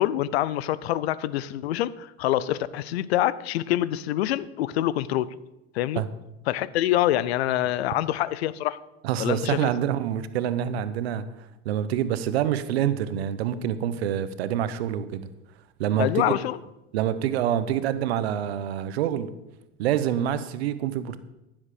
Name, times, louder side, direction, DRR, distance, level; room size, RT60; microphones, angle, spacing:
voice 1, 0.0-5.3 5.7-6.0 6.5-8.8 9.2-9.7 16.0-16.6, left 13 dB, 90° left, 19 dB, 0.6 m, -25 dB
voice 2, 9.0-11.3 11.6-15.3 15.8-16.4 16.9-19.3 19.8-21.2, right 10 dB, 85° right, 13 dB, 0.8 m, -26 dB
15.0 x 7.3 x 4.9 m, 0.95 s
hypercardioid pair, 80°, 31 cm